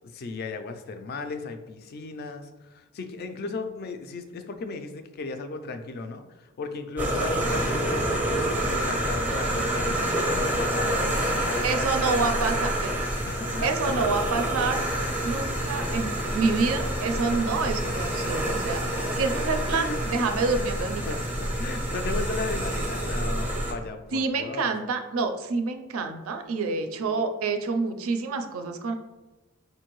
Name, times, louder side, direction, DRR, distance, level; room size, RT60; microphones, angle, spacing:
voice 1, 0.0-12.3 13.2-13.7 17.3-17.4 19.7-20.0 21.1-24.7, left 3 dB, 45° left, 7 dB, 0.3 m, -36 dB
sound 1, 7.0-23.7, right 1 dB, 10° right, 0.5 m, -27 dB
sound 2, 11.1-17.0, left 2 dB, 85° left, 0.7 m, -47 dB
voice 2, 11.6-12.9 13.6-14.8 15.2-16.1 16.3-21.0 24.1-28.9, right 4 dB, 70° right, 6 dB, 0.4 m, -27 dB
4.5 x 2.6 x 3.0 m, 1.1 s
head